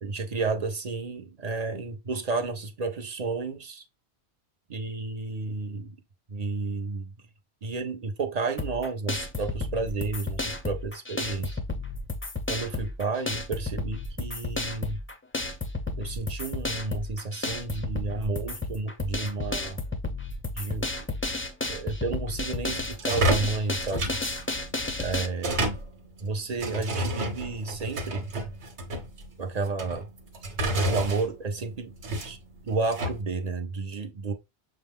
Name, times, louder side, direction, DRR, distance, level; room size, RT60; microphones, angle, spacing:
voice 1, 0.0-3.8 4.7-6.0 6.3-7.1 7.6-11.6 12.5-15.0 16.0-19.8 20.5-20.9 21.7-24.2 25.0-25.7 26.2-28.2 29.4-30.1 30.7-32.4 32.6-34.3, right 3 dB, 45° right, 0.7 m, -31 dB
sound 1, 8.6-25.3, left 2 dB, 20° left, 0.3 m, -32 dB
sound 2, 22.6-33.2, right 1 dB, 90° right, 1.4 m, -31 dB
6.5 x 2.2 x 3.5 m
omnidirectional pair, 1.1 m